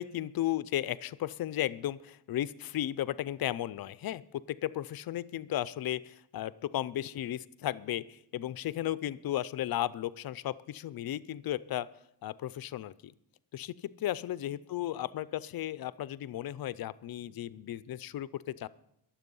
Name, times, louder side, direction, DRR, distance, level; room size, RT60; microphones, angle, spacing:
voice 1, 0.0-4.2 4.5-11.9 12.2-13.1 13.5-18.7, left 13 dB, 60° left, 17 dB, 0.5 m, -35 dB
22.5 x 7.6 x 5.4 m, 0.77 s
wide cardioid pair, 170°, 42 cm